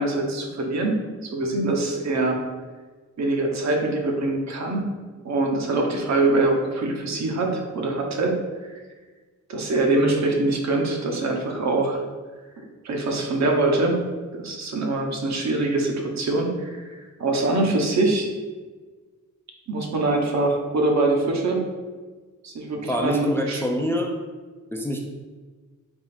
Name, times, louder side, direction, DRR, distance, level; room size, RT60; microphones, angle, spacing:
voice 1, 0.0-2.4 3.2-4.8 5.2-8.3 8.6-8.8 9.5-12.0 12.6-14.0 14.3-18.3 19.7-21.6 22.4-23.6, right 2 dB, 60° right, 1 dB, 0.8 m, -24 dB
voice 2, 22.9-24.2 24.7-25.0, equal, 10° left, 1 dB, 0.3 m, -25 dB
3.5 x 2.4 x 4.2 m, 1.4 s
cardioid pair, 90°, 31 cm